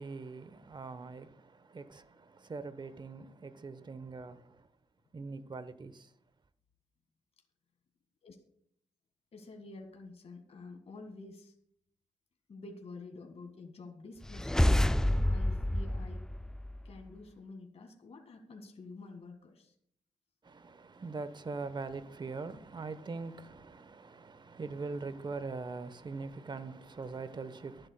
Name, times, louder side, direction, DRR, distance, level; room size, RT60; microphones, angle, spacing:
voice 1, 0.0-4.7 5.1-6.1 20.4-27.9, right 4 dB, 35° right, 1.0 m, -42 dB
voice 2, 9.3-11.5 12.5-16.3 16.8-19.7, left 3 dB, 55° left, 1.8 m, -49 dB
sound 1, 14.2-17.0, left 1 dB, 5° left, 0.3 m, -29 dB
23.5 x 7.9 x 2.2 m
supercardioid pair, 45°, 12 cm